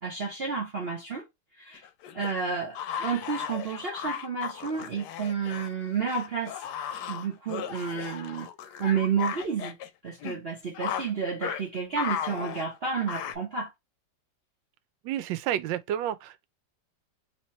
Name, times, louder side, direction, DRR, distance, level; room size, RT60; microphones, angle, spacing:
voice 1, 0.0-1.3 1.6-1.8 2.1-6.6 7.1-8.5 8.8-9.8 10.0-13.7, right 5 dB, 40° right, 0.9 m, -31 dB
sound 1, 1.7-5.7 6.1-9.9 10.2-10.4 10.7-11.1 11.4-11.6 12.0-13.4, left 9 dB, 70° left, 1.1 m, -36 dB
voice 2, 15.0-16.5, right 11 dB, 85° right, 1.3 m, -30 dB
3.3 x 2.9 x 4.2 m
omnidirectional pair, 2.0 m